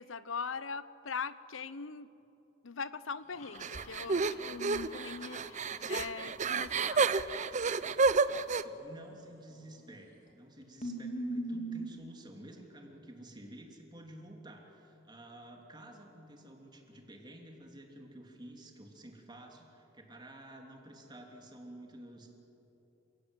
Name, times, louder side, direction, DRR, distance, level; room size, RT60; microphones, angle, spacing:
voice 1, 0.0-2.1 2.6-7.2, left 5 dB, 80° left, 16 dB, 0.9 m, -41 dB
sound 1, 3.4-6.8 9.5-10.0 10.3-10.4 10.8-11.9, right 1 dB, 35° left, 3.1 m, -42 dB
sound 2, 3.6-8.6, right 4 dB, 40° right, 0.6 m, -30 dB
voice 2, 8.6-22.3, right 1 dB, 25° right, 1 dB, 3.2 m, -51 dB
29.5 x 17.5 x 9.2 m, 3.0 s
head